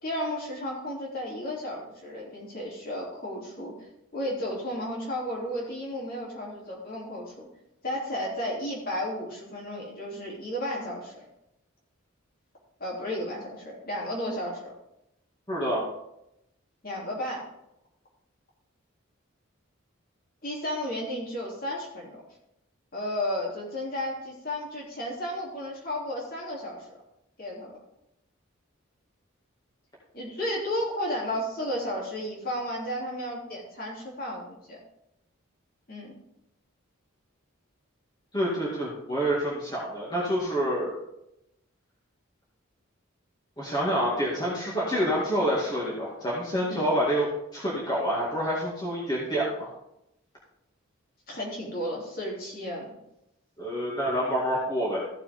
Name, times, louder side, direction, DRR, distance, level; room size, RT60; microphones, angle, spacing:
voice 1, 0.0-3.7 4.1-7.5 7.8-11.2 12.8-14.7 16.8-17.4 20.4-22.2 22.9-26.8 27.4-27.7 30.1-34.8 35.9-36.1 46.7-46.9 51.3-52.9, left 1 dB, 40° left, -3 dB, 3.1 m, -33 dB
voice 2, 15.5-15.8 38.3-40.9 43.6-47.3 47.5-49.7 53.6-55.0, equal, 20° left, -6 dB, 2.2 m, -27 dB
15.0 x 6.7 x 3.6 m, 0.83 s
head